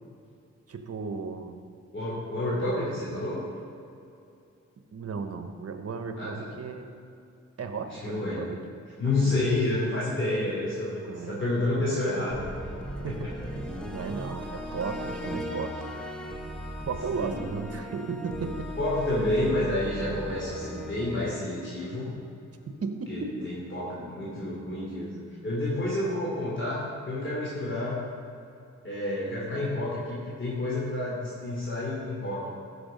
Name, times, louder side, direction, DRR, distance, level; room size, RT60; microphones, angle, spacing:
voice 1, 0.7-1.6 4.9-6.9 7.6-8.6 9.0-9.4 11.0-11.4 11.7-12.0 13.0-13.6 13.9-16.1 16.8-18.7 22.7-23.5, right 5 dB, 55° right, 7 dB, 1.1 m, -35 dB
voice 2, 1.9-3.4 6.2-6.5 7.9-8.5 9.0-11.0 11.3-12.5 13.1-13.2 17.1-17.4 18.8-22.2 23.1-28.0 28.8-32.5, left 2 dB, 40° left, -7 dB, 3.0 m, -29 dB
sound 1, 12.3-22.5, equal, 5° left, 1.3 m, -38 dB
14.5 x 6.5 x 5.2 m, 2.6 s
cardioid pair, 80°, 29 cm